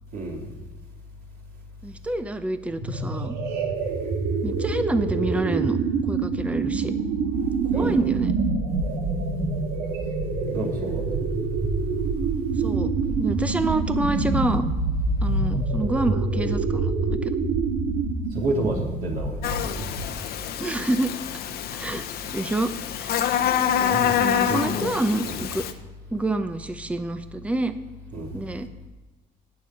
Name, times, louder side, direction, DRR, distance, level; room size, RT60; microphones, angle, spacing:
voice 1, 0.1-0.5 7.7-8.2 10.5-11.1 18.3-19.4 23.9-24.7 25.3-25.4 28.1-28.4, right 2 dB, 60° right, -2 dB, 3.5 m, -30 dB
voice 2, 1.8-3.4 4.4-5.8 6.1-6.9 7.7-8.4 12.6-12.9 13.2-14.7 15.2-17.5 20.6-21.1 21.7-23.3 23.8-25.7 26.1-27.8 28.3-28.7, right 2 dB, 10° right, 10 dB, 0.7 m, -27 dB
sound 1, 2.7-20.2, right 4 dB, 80° right, 1.8 m, -26 dB
Buzz, 19.4-25.7, left 9 dB, 65° left, 1.0 m, -26 dB
19.0 x 6.9 x 4.3 m, 1.2 s
cardioid pair, 110°, 17 cm